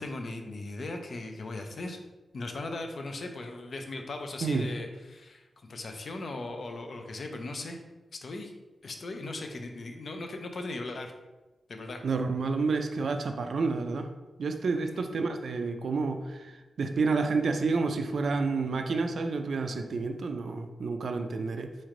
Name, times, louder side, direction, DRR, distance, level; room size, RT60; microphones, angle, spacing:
voice 1, 0.0-2.0 2.3-7.8 8.2-8.5 8.8-11.1 11.7-12.0 14.8-15.1, left 2 dB, 45° left, 5 dB, 0.5 m, -38 dB
voice 2, 12.0-14.1 14.4-21.8, right 4 dB, 55° right, 5 dB, 0.3 m, -29 dB
4.2 x 3.1 x 3.7 m, 1.1 s
wide cardioid pair, 160°, 0 cm